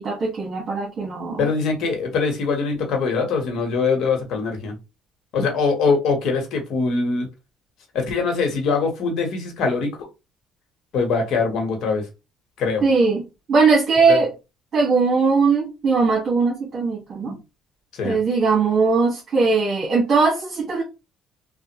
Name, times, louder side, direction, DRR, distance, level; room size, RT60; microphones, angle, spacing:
voice 1, 0.0-1.5 12.8-13.2 13.5-14.3 14.7-17.3 18.0-20.8, right 4 dB, 45° right, 1.5 m, -19 dB
voice 2, 1.4-4.8 5.3-7.3 7.9-10.1 10.9-12.1 12.6-12.8 14.1-14.2 17.2-17.4 17.9-18.2, left 4 dB, 65° left, 1.2 m, -22 dB
3.3 x 2.3 x 3.0 m
cardioid pair, 105°, 0 cm